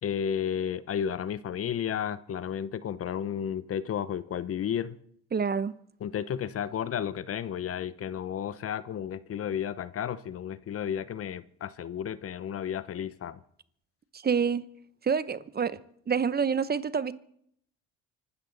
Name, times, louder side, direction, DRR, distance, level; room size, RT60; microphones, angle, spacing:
voice 1, 0.0-5.0 6.0-13.4, left 9 dB, 50° left, 0.9 m, -32 dB
voice 2, 5.3-5.7 14.2-14.6 15.0-15.8 16.1-17.1, right 6 dB, 30° right, 0.9 m, -27 dB
25.0 x 12.5 x 4.0 m
supercardioid pair, 70°, 31 cm